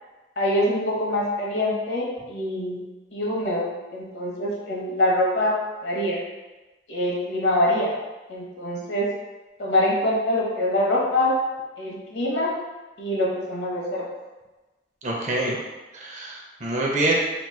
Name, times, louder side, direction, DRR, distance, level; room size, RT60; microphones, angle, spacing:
voice 1, 0.4-2.8 3.1-5.5 5.8-6.2 6.9-7.9 8.3-9.1 9.6-11.3 11.8-12.5 13.0-14.0, left 1 dB, 70° left, -4 dB, 1.0 m, -24 dB
voice 2, 15.0-15.6 15.9-17.1, right 2 dB, 45° right, -2 dB, 0.6 m, -25 dB
3.0 x 2.5 x 3.6 m, 1.2 s
head